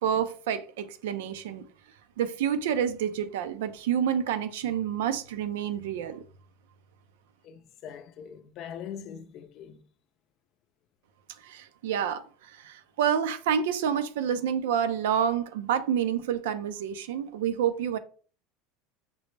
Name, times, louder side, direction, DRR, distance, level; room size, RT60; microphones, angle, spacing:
voice 1, 0.0-1.7 2.2-6.2 11.4-18.0, right 8 dB, 85° right, 0.4 m, -28 dB
voice 2, 7.4-9.8, left 8 dB, 50° left, 0.5 m, -42 dB
5.2 x 2.0 x 3.2 m
supercardioid pair, 120°, 0 cm